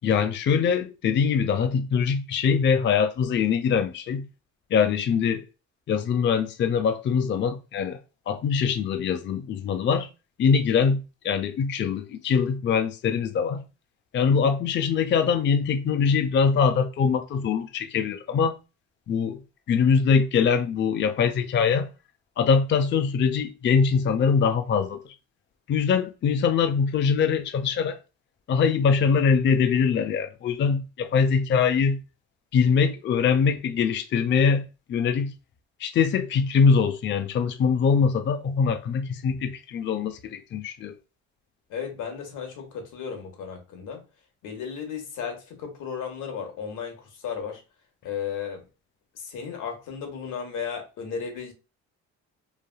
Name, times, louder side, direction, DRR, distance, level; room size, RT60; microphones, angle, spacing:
voice 1, 0.0-4.3 4.7-5.4 5.9-8.0 8.3-10.1 10.4-13.6 14.1-18.6 19.1-19.4 19.7-21.9 22.4-25.0 25.7-28.0 28.5-32.0 32.5-34.6 34.9-35.3 35.8-40.9, left 6 dB, 40° left, 0.4 m, -23 dB
voice 2, 41.7-44.0 44.4-47.6 48.0-48.6 49.1-51.5, left 7 dB, 90° left, 1.1 m, -34 dB
3.2 x 2.4 x 2.3 m
cardioid pair, 90°, 30 cm